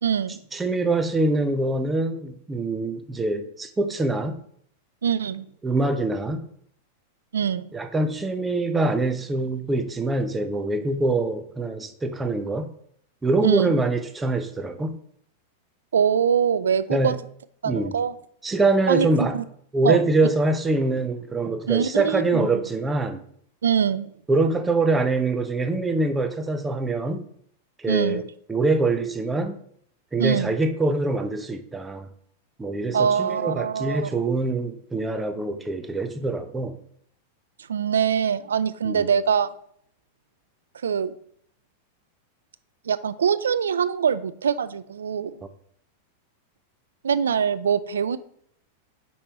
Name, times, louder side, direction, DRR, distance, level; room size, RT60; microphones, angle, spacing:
voice 1, 0.0-0.4 5.0-5.4 7.3-7.7 13.4-13.8 15.9-17.1 17.6-18.1 18.9-19.1 19.3-19.4 19.8-20.0 21.7-22.5 23.6-24.1 27.9-28.2 30.2-30.5 32.9-34.1 37.7-39.5 40.8-41.1 42.9-45.3 47.0-48.2, right 7 dB, 80° right, 14 dB, 0.4 m, -23 dB
voice 2, 0.5-4.4 5.6-6.5 7.7-12.7 13.2-15.0 16.9-17.2 17.6-18.0 18.4-19.4 19.7-23.2 24.3-27.2 27.8-28.2 28.5-29.6 30.1-32.1 32.6-36.8 38.8-39.1, right 2 dB, 15° right, 7 dB, 0.7 m, -24 dB
5.4 x 4.3 x 4.7 m, 0.64 s
hypercardioid pair, 100°, 0 cm